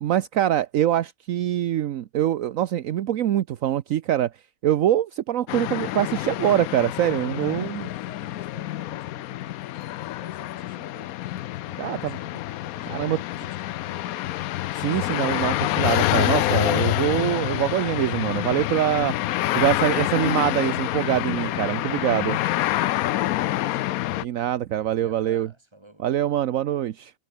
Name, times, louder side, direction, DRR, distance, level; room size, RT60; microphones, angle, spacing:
voice 1, 0.0-4.3 4.6-7.9 11.8-12.2 12.9-13.2 14.7-19.1 19.5-22.4 24.2-25.5 26.0-27.1, right 11 dB, 70° right, 1.1 m, -24 dB
sound 1, 5.5-24.2, left 15 dB, 80° left, 1.0 m, -27 dB
voice 2, 7.0-14.4 21.1-24.0 24.9-26.1, right 1 dB, 20° right, 3.5 m, -49 dB
omnidirectional pair, 1.5 m